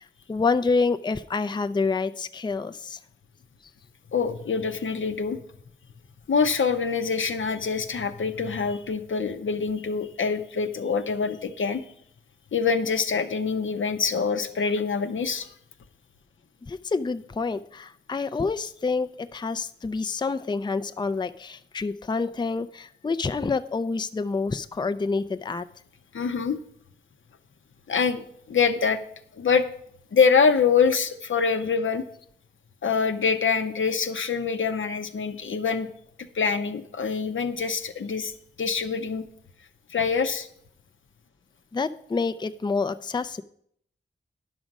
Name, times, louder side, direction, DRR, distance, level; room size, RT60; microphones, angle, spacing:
voice 1, 0.0-3.0 16.6-25.7 41.7-43.4, left 4 dB, 20° left, 11 dB, 0.4 m, -28 dB
voice 2, 4.1-5.4 6.3-11.8 12.5-15.5 26.1-26.6 27.9-29.0 29.4-29.7 30.1-32.0 32.8-35.9 36.3-38.3 38.6-39.3 39.9-40.5, left 5 dB, 80° left, 8 dB, 0.7 m, -25 dB
10.5 x 6.1 x 5.2 m, 0.68 s
wide cardioid pair, 55°, 20 cm